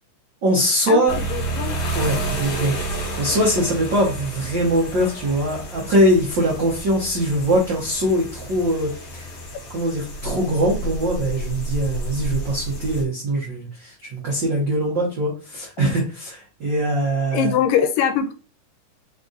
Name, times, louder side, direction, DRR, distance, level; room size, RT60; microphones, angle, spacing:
voice 1, 0.4-1.2 1.9-2.8 3.2-9.3 9.7-17.5, equal, 80° right, -3 dB, 1.0 m, -22 dB
sound 1, 1.1-13.0, right 1 dB, 50° left, 1.3 m, -30 dB
voice 2, 1.3-1.8 17.3-18.3, left 8 dB, 90° left, 8 dB, 2.2 m, -21 dB
5.1 x 2.5 x 3.9 m, 0.36 s
omnidirectional pair, 3.9 m